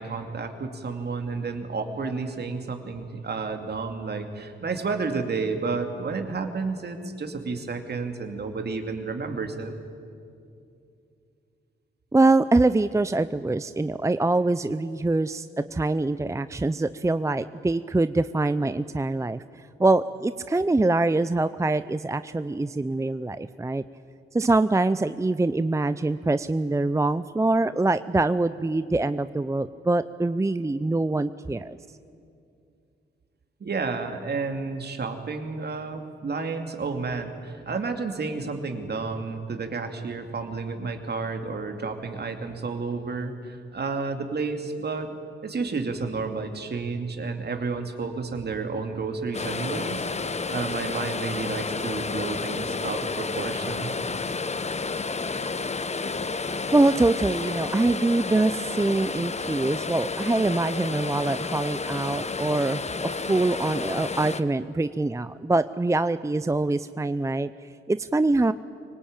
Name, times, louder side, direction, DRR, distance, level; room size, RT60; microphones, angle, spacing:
voice 1, 0.0-9.7 33.6-45.2 45.4-50.1 50.5-54.0, right 4 dB, 50° right, 5 dB, 2.6 m, -31 dB
voice 2, 12.1-19.4 19.8-23.8 24.3-31.8 56.7-68.5, right 2 dB, 15° right, 13 dB, 0.6 m, -24 dB
sound 1, 49.3-64.4, left 4 dB, 30° left, 1.1 m, -31 dB
24.0 x 18.5 x 8.9 m, 2.5 s
cardioid pair, 65°, 21 cm